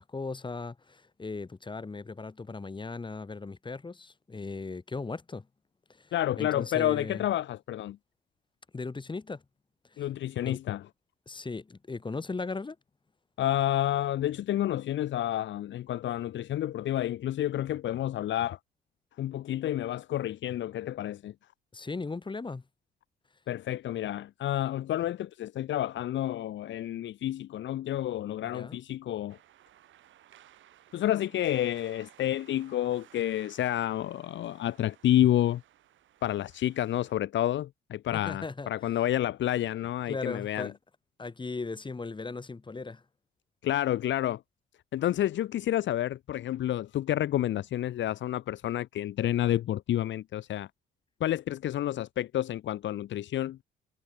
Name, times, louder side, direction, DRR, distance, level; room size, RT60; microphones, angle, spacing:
voice 1, 0.0-5.5 5.9-7.2 8.7-9.4 9.9-10.0 10.4-10.6 11.3-12.8 21.7-22.6 28.4-28.8 38.1-38.7 40.1-40.7 41.2-43.0, left 3 dB, 25° left, 2.5 m, -37 dB
voice 2, 6.1-8.0 10.0-10.9 13.4-18.6 19.2-21.3 23.5-29.4 30.9-35.6 36.2-40.7 43.6-44.4 44.9-50.7 51.2-53.6, left 12 dB, 70° left, 1.0 m, -29 dB
sound 1, 29.3-37.1, right 12 dB, 75° right, 5.6 m, -58 dB
cardioid pair, 90°, 20 cm